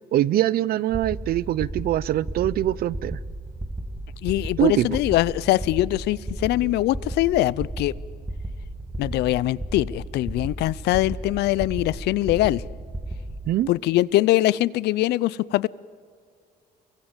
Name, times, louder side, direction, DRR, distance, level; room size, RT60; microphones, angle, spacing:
voice 1, 0.1-3.2 4.6-4.9 13.5-13.7, right 13 dB, 65° right, 22 dB, 0.6 m, -23 dB
sound 1, 0.9-13.6, right 1 dB, 10° right, 1.5 m, -34 dB
voice 2, 4.2-7.9 9.0-12.6 13.7-15.7, left 16 dB, 80° left, 21 dB, 0.6 m, -22 dB
28.0 x 23.5 x 7.3 m, 2.1 s
cardioid pair, 110°, 17 cm